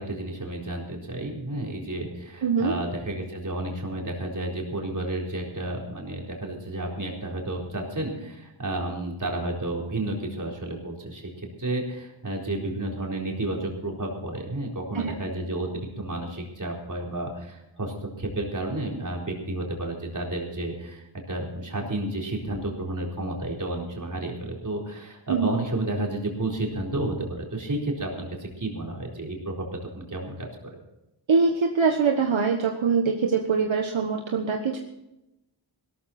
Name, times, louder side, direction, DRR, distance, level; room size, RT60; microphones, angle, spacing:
voice 1, 0.0-29.6 29.9-30.8, right 1 dB, 40° right, -1 dB, 4.3 m, -31 dB
voice 2, 2.4-2.7 14.9-15.1 25.3-25.5 31.3-34.8, right 5 dB, 70° right, 2 dB, 1.5 m, -23 dB
18.0 x 13.0 x 4.4 m, 0.91 s
wide cardioid pair, 115°, 48 cm